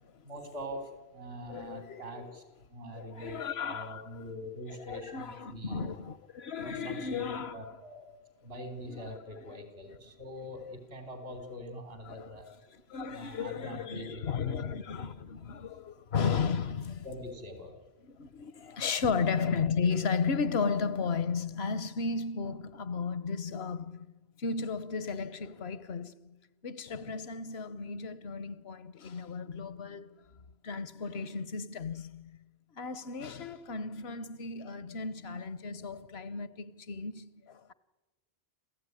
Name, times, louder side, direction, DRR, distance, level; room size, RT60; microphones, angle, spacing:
voice 1, 0.2-2.4 2.7-5.9 6.6-8.1 8.4-12.5 13.1-14.9 17.0-17.8, equal, 75° right, 4.4 m, -44 dB
voice 2, 1.5-2.4 2.9-4.3 4.7-7.6 8.9-9.1 9.5-9.6 9.8-10.0 12.1-12.3 12.7-17.0 18.0-24.1 24.4-26.1 26.6-30.2 30.6-32.3 32.8-37.7, left 5 dB, 80° left, 1.2 m, -34 dB
27.5 x 15.5 x 9.8 m
omnidirectional pair, 1.0 m